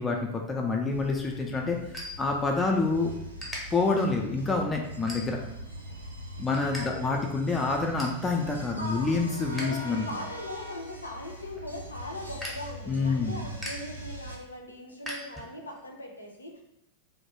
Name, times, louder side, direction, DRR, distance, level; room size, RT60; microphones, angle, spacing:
voice 1, 0.0-1.8 2.2-3.2 3.7-5.4 6.4-10.1 12.9-13.5, left 3 dB, 15° left, 1 dB, 0.3 m, -27 dB
sound 1, 0.9-14.4, equal, 85° right, 0.3 m, -42 dB
sound 2, 1.9-2.9 3.2-3.6 4.2-4.4 4.9-5.6 6.0-6.8 7.1-7.2 7.6-8.2 8.7-9.7 10.0-15.8, equal, ahead, 0.7 m, -42 dB
voice 2, 6.7-7.3 8.8-9.1 9.6-16.6, left 1 dB, 80° left, 1 dB, 0.4 m, -40 dB
2.2 x 2.1 x 2.9 m, 0.82 s
figure-of-eight pair, 90°, 0 cm